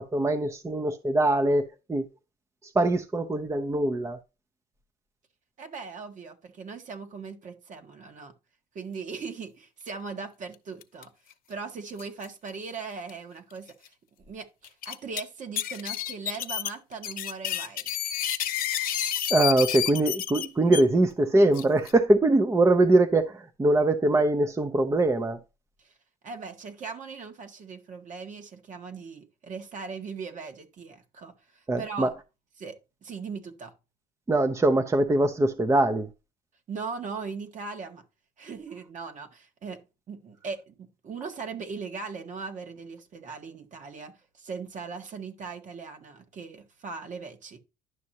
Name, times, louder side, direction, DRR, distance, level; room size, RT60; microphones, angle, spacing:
voice 1, 0.0-2.1 2.7-4.2 19.3-25.4 31.7-32.1 34.3-36.1, right 2 dB, 15° right, 0.7 m, -22 dB
voice 2, 5.6-8.3 8.7-11.1 11.5-17.9 25.8-25.9 26.2-32.1 32.6-33.7 36.7-38.0 38.4-39.8 40.1-47.6, right 5 dB, 50° right, 1.6 m, -39 dB
sound 1, 10.8-11.0 11.3-11.4 12.0-12.2 13.1-13.2 13.7-13.8 14.6-15.2 15.6-20.8 21.5-21.9, left 11 dB, 55° left, 0.9 m, -30 dB
11.0 x 6.2 x 2.8 m
cardioid pair, 110°, 17 cm